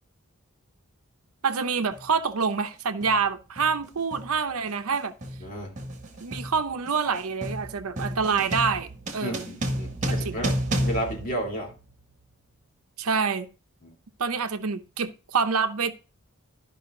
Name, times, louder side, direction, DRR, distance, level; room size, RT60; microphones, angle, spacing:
voice 1, 1.4-5.1 6.2-9.5 10.1-10.4 13.0-13.5 14.2-15.9, right 5 dB, 80° right, 0.8 m, -27 dB
sound 1, 1.9-2.1 3.0-3.3 3.6-12.1, right 1 dB, 35° right, 1.7 m, -32 dB
voice 2, 5.4-5.8 9.2-11.7 13.8-13.9, equal, 40° left, 2.7 m, -33 dB
12.0 x 5.5 x 3.7 m
head